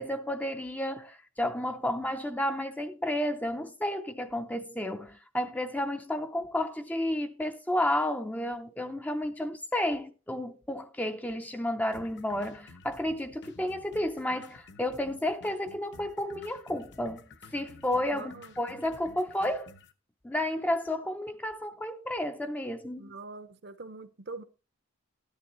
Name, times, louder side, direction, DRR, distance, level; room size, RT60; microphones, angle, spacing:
voice 1, 0.0-19.7 20.2-23.1, left 1 dB, 10° left, 0.5 m, -32 dB
sound 1, 11.9-19.9, left 3 dB, 60° left, 0.9 m, -52 dB
voice 2, 18.1-18.5 23.0-24.4, right 3 dB, 55° right, 0.7 m, -43 dB
13.0 x 10.0 x 3.0 m
head